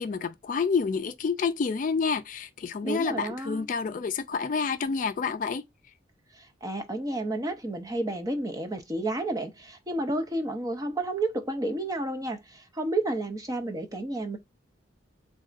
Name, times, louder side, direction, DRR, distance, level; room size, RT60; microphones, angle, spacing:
voice 1, 0.0-5.6, left 5 dB, 45° left, 0.3 m, -28 dB
voice 2, 2.8-3.7 6.3-14.4, right 2 dB, 20° right, 0.6 m, -31 dB
4.0 x 2.3 x 2.5 m
head